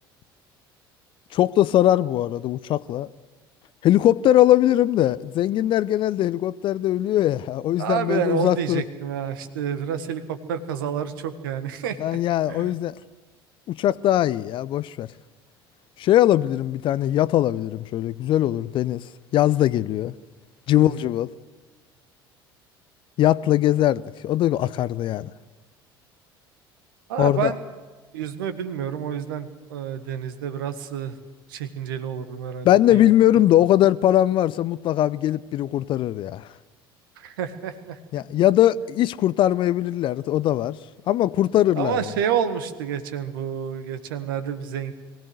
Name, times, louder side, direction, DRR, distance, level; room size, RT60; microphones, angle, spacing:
voice 1, 1.3-3.1 3.8-8.8 12.0-12.9 13.7-15.1 16.0-19.0 19.3-20.1 20.7-21.3 23.2-25.3 27.2-27.5 32.6-36.5 38.1-40.8 41.1-42.0, left 13 dB, 40° left, 0.6 m, -20 dB
voice 2, 7.8-12.2 12.5-12.7 20.7-21.0 27.1-27.6 28.1-31.2 31.5-33.1 37.2-38.0 41.8-44.9, right 8 dB, 65° right, 1.6 m, -29 dB
22.5 x 17.5 x 8.0 m
figure-of-eight pair, 60°, 13 cm